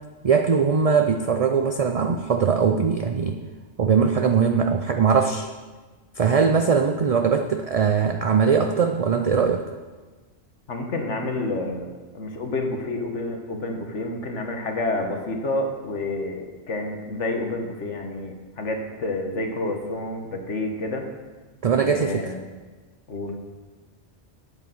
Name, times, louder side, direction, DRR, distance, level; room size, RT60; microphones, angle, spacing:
voice 1, 0.2-3.4 3.8-5.5 6.2-9.6 21.6-22.3, right 6 dB, 45° right, 6 dB, 0.5 m, -21 dB
voice 2, 10.7-21.0 21.7-22.4 23.1-23.3, left 2 dB, 80° left, 3 dB, 1.7 m, -29 dB
8.8 x 8.3 x 7.7 m, 1.3 s
omnidirectional pair, 1.2 m